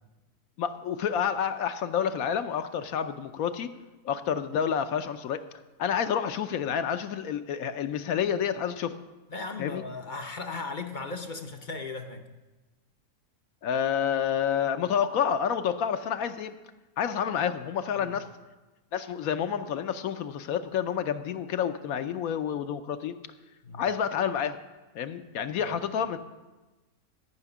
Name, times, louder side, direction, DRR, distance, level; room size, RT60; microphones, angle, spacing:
voice 1, 0.6-3.7 4.0-5.4 5.8-9.0 9.6-9.8 13.6-16.5 17.0-18.3 18.9-23.1 23.7-24.6 24.9-26.2, left 8 dB, 75° left, 9 dB, 1.1 m, -29 dB
voice 2, 9.3-12.2 18.0-18.2 23.6-23.8 25.6-25.7, left 3 dB, 45° left, 6 dB, 0.6 m, -37 dB
13.5 x 5.8 x 8.2 m, 1.1 s
omnidirectional pair, 1.6 m